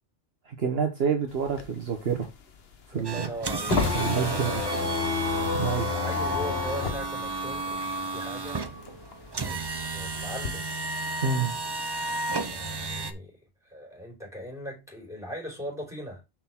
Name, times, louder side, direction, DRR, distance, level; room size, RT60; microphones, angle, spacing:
voice 1, 0.5-2.3 2.9-3.3 3.9-4.6 5.5-5.9 11.2-11.6, right 6 dB, 60° right, 1.2 m, -28 dB
sound 1, 1.3-8.4 8.7-10.5, left 5 dB, 60° left, 1.2 m, -30 dB
voice 2, 2.9-3.8 4.1-4.9 5.9-8.6 9.4-10.7 12.5-13.3 13.7-16.2, equal, 5° right, 4.5 m, -39 dB
sound 2, 3.0-13.1, right 3 dB, 30° right, 0.5 m, -33 dB
6.6 x 6.0 x 3.6 m
omnidirectional pair, 1.2 m